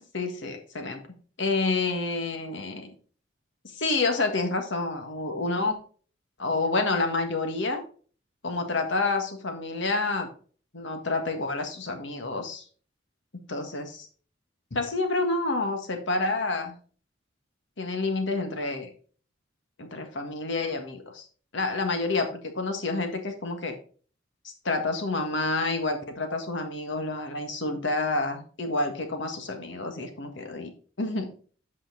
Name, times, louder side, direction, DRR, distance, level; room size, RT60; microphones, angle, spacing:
voice 1, 0.1-1.0 1.4-2.9 3.6-5.8 6.4-7.8 8.4-10.3 10.7-12.6 13.5-14.1 14.7-16.7 17.8-18.9 19.8-21.2 21.5-23.8 24.4-30.7 31.0-31.3, left 3 dB, 70° left, 5 dB, 1.6 m, -28 dB
8.4 x 5.7 x 3.9 m, 0.42 s
head